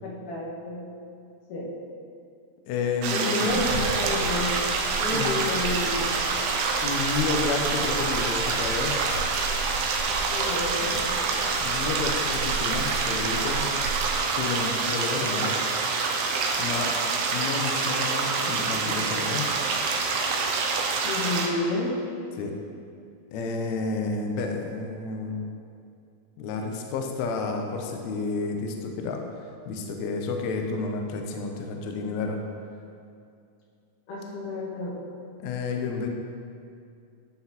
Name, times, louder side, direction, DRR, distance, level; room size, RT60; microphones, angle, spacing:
voice 1, 0.0-0.9 1.5-1.7 3.1-4.6 4.9-6.5 10.1-11.2 15.1-15.4 21.0-22.0 34.1-35.1, left 2 dB, 70° left, -6 dB, 3.0 m, -31 dB
voice 2, 2.7-3.7 5.1-5.4 6.8-9.0 11.6-13.6 14.3-15.6 16.6-16.9 17.3-19.4 22.4-22.5 23.3-25.5 26.4-32.4 35.4-36.1, left 4 dB, 90° left, 3 dB, 1.6 m, -30 dB
sound 1, 3.0-21.5, right 4 dB, 80° right, 2.4 m, -26 dB
sound 2, 3.5-14.2, right 3 dB, 65° right, 3.7 m, -36 dB
11.5 x 5.7 x 2.9 m, 2.4 s
omnidirectional pair, 4.1 m